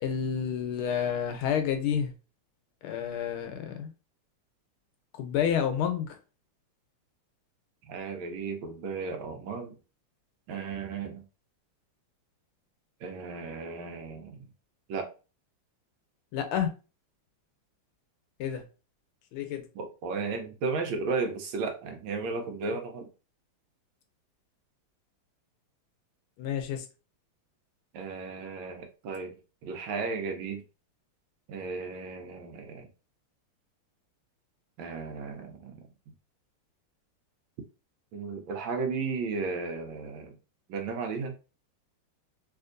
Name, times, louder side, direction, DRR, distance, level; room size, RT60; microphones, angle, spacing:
voice 1, 0.0-2.1 2.8-3.9 5.2-6.1 16.3-16.7 18.4-18.6 19.3-19.6 26.4-26.9, left 8 dB, 85° left, 1.5 m, -29 dB
voice 2, 7.9-9.7 10.5-11.2 13.0-14.4 14.9-15.1 19.8-23.1 27.9-29.3 29.6-30.6 31.5-32.9 34.8-35.8 38.1-40.3 40.7-41.3, right 4 dB, 75° right, 1.3 m, -34 dB
3.3 x 2.8 x 2.5 m
omnidirectional pair, 2.4 m